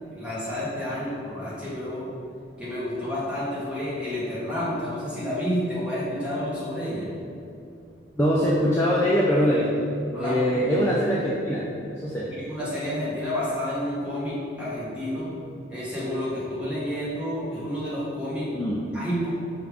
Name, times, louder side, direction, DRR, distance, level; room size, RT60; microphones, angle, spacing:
voice 1, 0.0-2.1 2.6-7.1 10.1-10.5 12.3-15.3 15.7-18.5 18.9-19.3, equal, 5° right, -9 dB, 1.0 m, -30 dB
voice 2, 8.1-9.8 10.2-11.6 11.9-12.3 18.5-18.8, equal, 15° left, -6 dB, 0.3 m, -23 dB
5.0 x 2.4 x 3.3 m, 2.6 s
head